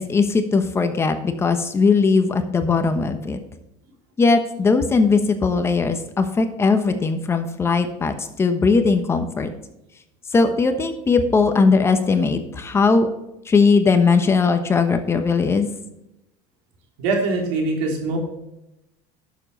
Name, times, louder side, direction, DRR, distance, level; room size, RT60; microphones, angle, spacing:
voice 1, 0.0-3.4 4.2-9.5 10.3-13.1 13.5-15.7, left 4 dB, 20° left, 8 dB, 1.0 m, -19 dB
voice 2, 17.0-18.2, right 3 dB, 80° right, 1 dB, 3.4 m, -22 dB
11.0 x 7.2 x 4.1 m, 0.88 s
cardioid pair, 135°, 12 cm